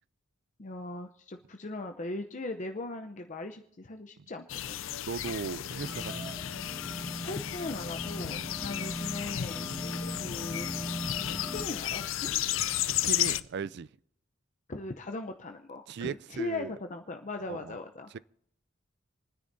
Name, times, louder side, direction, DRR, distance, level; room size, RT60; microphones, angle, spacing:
voice 1, 0.6-4.8 7.0-9.7 10.1-10.7 11.3-12.3 14.7-18.1, left 2 dB, 40° left, 0.7 m, -39 dB
sound 1, 4.5-13.4, left 12 dB, 80° left, 0.5 m, -33 dB
voice 2, 5.1-6.3 8.4-8.5 12.8-13.9 15.9-16.7 17.5-17.8 18.1-18.2, right 5 dB, 55° right, 0.4 m, -37 dB
sound 2, 5.8-11.7, equal, 10° left, 0.9 m, -40 dB
sound 3, 6.1-6.4 7.4-7.5 8.2-8.3 8.9-9.6, right 4 dB, 30° right, 1.9 m, -49 dB
28.5 x 10.0 x 2.7 m
head